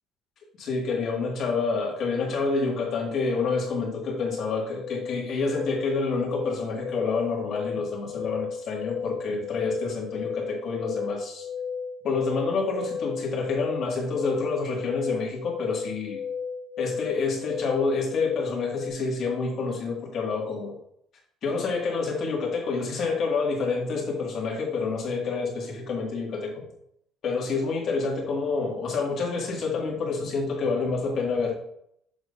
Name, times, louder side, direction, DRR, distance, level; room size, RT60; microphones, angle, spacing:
voice 1, 0.6-11.5 12.0-16.2 16.8-20.7 21.4-26.7 27.2-31.5, left 4 dB, 50° left, -1 dB, 2.2 m, -28 dB
sound 1, 3.4-18.9, left 6 dB, 15° right, 2.4 m, -35 dB
7.1 x 6.3 x 2.7 m, 0.71 s
cardioid pair, 135°, 0 cm